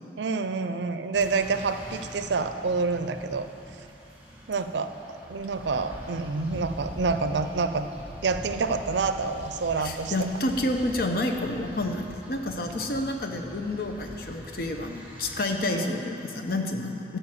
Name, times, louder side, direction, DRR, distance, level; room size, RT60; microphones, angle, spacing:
voice 1, 0.2-3.5 4.5-7.9 8.2-10.1 15.7-15.9, right 4 dB, 80° right, 10 dB, 0.5 m, -28 dB
sound 1, 1.1-15.4, right 1 dB, 10° right, 1.4 m, -43 dB
voice 2, 9.8-17.2, left 1 dB, 55° left, 3 dB, 0.8 m, -29 dB
12.0 x 5.2 x 7.5 m, 2.9 s
head